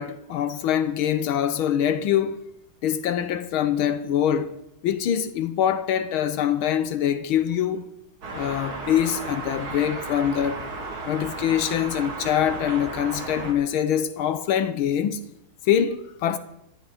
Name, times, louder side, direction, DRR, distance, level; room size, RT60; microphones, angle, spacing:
voice 1, 0.0-2.5 2.8-4.5 4.8-7.8 8.3-10.6 11.1-15.2 15.6-16.4, left 9 dB, 85° left, 1.7 m, -24 dB
sound 1, 8.2-13.5, right 3 dB, 80° right, 3.4 m, -34 dB
21.0 x 15.5 x 4.1 m
omnidirectional pair, 2.3 m